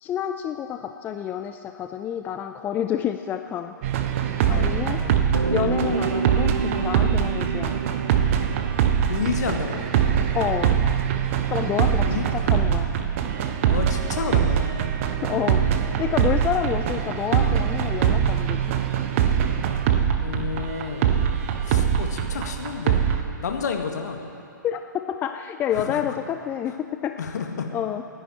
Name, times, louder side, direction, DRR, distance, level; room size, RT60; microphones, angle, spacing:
voice 1, 0.0-3.7 4.5-5.0 5.5-7.8 10.3-10.8 11.5-12.9 15.0-15.6 16.0-18.8 24.6-24.8 25.1-27.2 27.7-28.0, left 9 dB, 15° left, 7 dB, 0.4 m, -28 dB
sound 1, 3.8-23.2, right 9 dB, 40° right, 1.1 m, -23 dB
voice 2, 4.5-5.2 9.1-9.8 12.1-12.3 13.7-14.6 20.2-21.2 21.6-23.0 23.4-24.2 25.8-26.1 27.2-27.7, left 6 dB, 55° left, 4 dB, 1.8 m, -30 dB
sound 2, 5.3-10.0, right 4 dB, 90° right, 0.8 m, -29 dB
28.5 x 10.0 x 4.4 m, 2.6 s
figure-of-eight pair, 120°, 11 cm